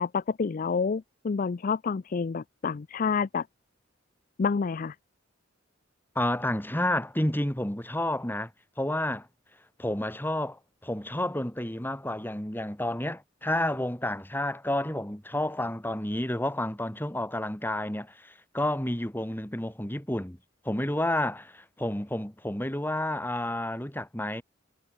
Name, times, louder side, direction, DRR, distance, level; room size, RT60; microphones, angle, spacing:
voice 1, 0.0-3.5 4.4-5.0, left 5 dB, 45° left, 0.4 m, -28 dB
voice 2, 6.1-8.5 8.8-9.3 9.8-20.4 20.6-24.4, left 1 dB, 10° left, 2.6 m, -30 dB
head